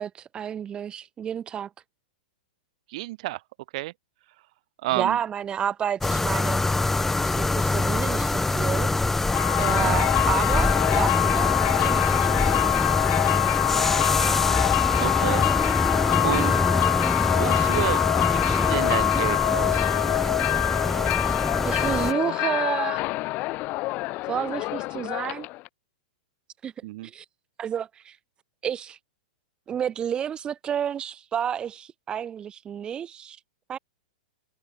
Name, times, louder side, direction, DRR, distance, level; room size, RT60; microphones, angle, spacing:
voice 1, 0.0-1.7 4.9-6.6 7.2-8.9 9.6-13.0 16.3-16.7 21.6-23.0 24.3-25.5 26.6-26.7 27.0-27.2 27.6-28.2 28.6-29.0 29.7-33.4 33.7-33.8, right 8 dB, 20° right, 2.9 m, -30 dB
voice 2, 2.9-3.4 3.7-3.9 4.8-5.2 9.6-10.0 15.0-15.5 16.2-16.5 17.1-18.0 18.3-19.9 26.8-27.1, right 19 dB, 55° right, 3.2 m, -30 dB
sound 1, 6.0-22.1, left 2 dB, 5° left, 2.6 m, -24 dB
sound 2, 9.2-25.7, left 21 dB, 35° left, 2.3 m, -25 dB
hypercardioid pair, 140°, 4 cm